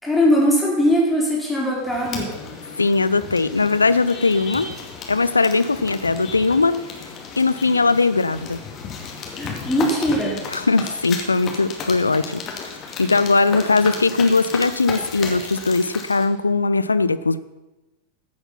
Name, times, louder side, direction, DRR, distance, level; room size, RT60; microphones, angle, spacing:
voice 1, 0.0-2.3 9.4-10.4, equal, 5° left, -5 dB, 4.1 m, -20 dB
sound 1, 1.8-16.2, left 5 dB, 30° left, 2.3 m, -34 dB
voice 2, 2.8-4.7 5.1-6.8 7.4-8.6 10.5-12.4 13.0-17.4, left 3 dB, 80° left, 15 dB, 0.5 m, -19 dB
15.0 x 8.0 x 5.8 m, 1.1 s
figure-of-eight pair, 90°, 0 cm